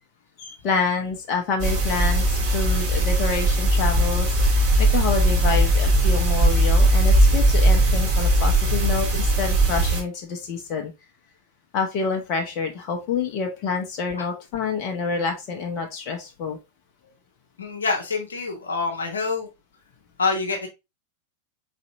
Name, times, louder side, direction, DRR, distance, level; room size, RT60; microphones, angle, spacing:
voice 1, 0.4-10.9 11.7-16.6, left 5 dB, 40° left, 1.1 m, -27 dB
sound 1, 1.6-10.0, right 1 dB, 40° right, 2.7 m, -19 dB
voice 2, 17.6-19.5 20.2-20.7, left 4 dB, 70° left, 1.1 m, -26 dB
4.4 x 4.0 x 2.6 m
figure-of-eight pair, 90°, 0 cm